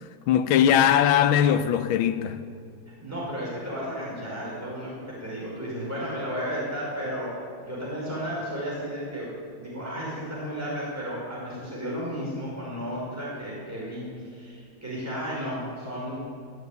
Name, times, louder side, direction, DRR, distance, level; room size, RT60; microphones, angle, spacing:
voice 1, 0.3-2.4, left 9 dB, 85° left, 1.6 m, -20 dB
voice 2, 3.0-7.4 7.7-16.2, equal, 5° right, 5.3 m, -33 dB
13.0 x 12.0 x 9.3 m
omnidirectional pair, 2.2 m